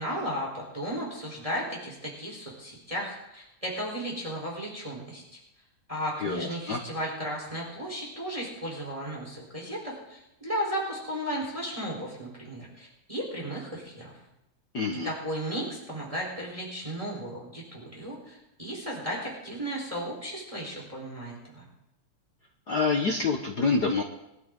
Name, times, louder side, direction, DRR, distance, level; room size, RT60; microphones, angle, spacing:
voice 1, 0.0-5.2 5.9-14.1 15.0-21.7, equal, 10° right, -2 dB, 3.9 m, -35 dB
voice 2, 6.2-6.8 14.7-15.1 22.7-24.0, left 4 dB, 60° left, 1 dB, 1.1 m, -27 dB
21.5 x 13.0 x 3.8 m, 0.89 s
omnidirectional pair, 3.4 m